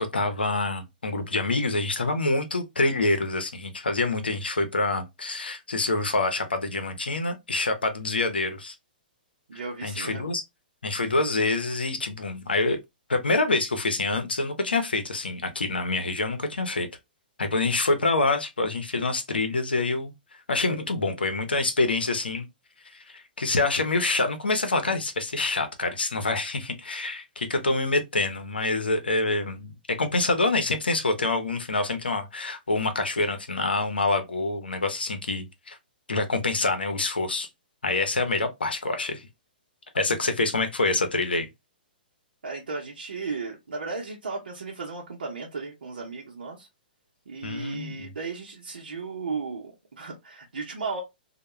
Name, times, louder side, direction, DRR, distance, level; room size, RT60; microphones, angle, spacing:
voice 1, 0.0-8.7 9.8-10.4 10.8-12.8 13.1-16.9 17.4-20.1 20.5-22.5 23.1-29.7 30.0-35.8 36.1-37.5 37.8-39.3 39.9-41.5 47.4-48.1, left 2 dB, 85° left, 0.6 m, -26 dB
voice 2, 9.5-10.3 42.4-46.7 47.3-51.0, right 4 dB, 75° right, 0.7 m, -35 dB
2.2 x 2.1 x 3.0 m
figure-of-eight pair, 120°, 5 cm